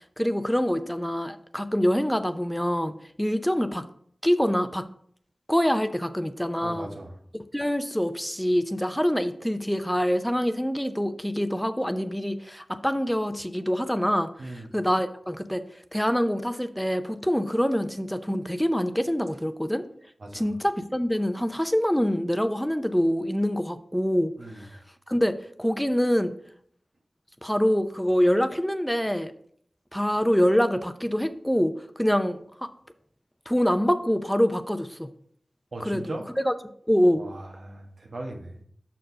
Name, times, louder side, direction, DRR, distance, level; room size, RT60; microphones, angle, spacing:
voice 1, 0.2-2.9 3.2-3.8 4.2-4.8 5.5-6.9 7.3-14.3 14.7-15.6 15.9-19.8 20.3-24.3 25.1-26.3 27.4-29.3 29.9-32.4 33.5-35.1 35.9-36.1 36.4-36.5 36.9-37.3, equal, 5° left, 10 dB, 0.6 m, -25 dB
voice 2, 6.6-7.2 14.4-14.7 20.2-20.5 24.4-24.6 35.7-36.2 37.2-38.6, right 1 dB, 85° right, 0 dB, 1.4 m, -38 dB
6.3 x 4.5 x 5.6 m, 0.64 s
cardioid pair, 45°, 0 cm